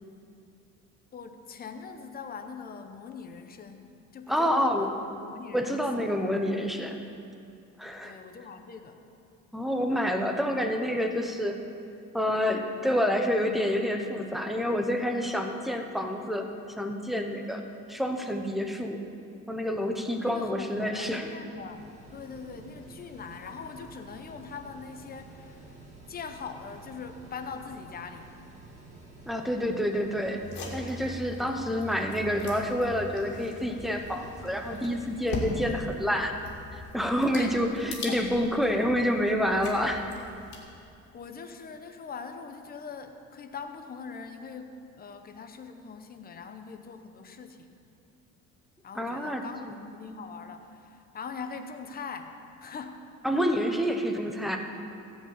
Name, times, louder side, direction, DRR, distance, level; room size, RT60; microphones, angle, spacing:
voice 1, 1.1-4.8 5.2-6.1 8.0-9.0 20.2-25.7 26.1-28.3 37.3-37.5 41.1-47.7 48.8-53.0, left 5 dB, 30° left, 7 dB, 0.8 m, -42 dB
voice 2, 4.3-4.9 5.5-7.0 7.8-8.1 9.5-11.6 12.1-17.6 17.9-19.0 19.5-21.3 29.3-30.4 30.7-36.4 36.9-40.0 48.9-49.7 53.2-54.6, equal, ahead, 4 dB, 0.8 m, -28 dB
Mechanical fan, 20.4-36.7, right 2 dB, 25° right, 2.0 m, -51 dB
sound 1, 30.4-40.6, left 2 dB, 70° left, 2.7 m, -40 dB
15.0 x 5.1 x 8.3 m, 2.6 s
cardioid pair, 150°, 29 cm